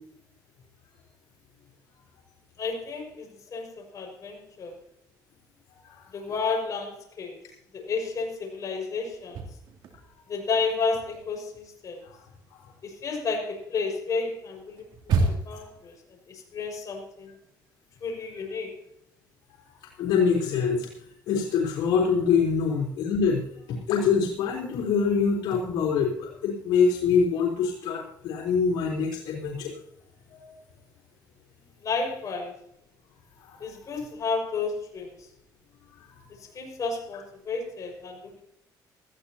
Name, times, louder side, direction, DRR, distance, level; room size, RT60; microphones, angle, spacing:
voice 1, 2.6-4.8 6.1-7.4 7.7-9.4 10.3-12.1 12.8-14.8 15.3-16.0 16.3-17.3 18.0-18.8 31.8-32.5 33.6-35.3 36.4-38.4, left 4 dB, 45° left, 1 dB, 6.0 m, -32 dB
sound 1, 9.1-10.3 10.6-15.7, right 3 dB, 75° right, 3.0 m, -31 dB
voice 2, 20.0-20.9 21.3-23.4 23.7-29.7 30.3-30.5 33.5-33.6 36.1-36.2, left 6 dB, 90° left, -3 dB, 3.9 m, -24 dB
19.0 x 15.0 x 2.9 m, 0.72 s
cardioid pair, 100°, 8 cm